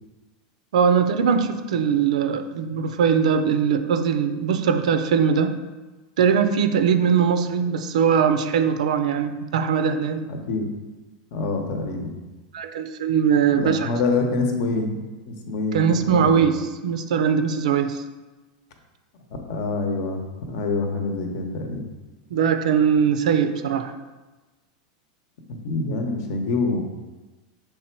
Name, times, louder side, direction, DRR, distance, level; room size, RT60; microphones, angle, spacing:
voice 1, 0.7-5.5 6.2-10.2 12.5-13.9 15.7-18.0 22.3-23.9, right 7 dB, 80° right, 9 dB, 0.5 m, -21 dB
voice 2, 10.3-10.7 11.3-12.1 13.5-16.4 19.5-20.2 20.5-21.8 25.6-26.8, left 3 dB, 45° left, 4 dB, 0.9 m, -26 dB
6.4 x 3.4 x 4.5 m, 1.2 s
supercardioid pair, 175°, 4 cm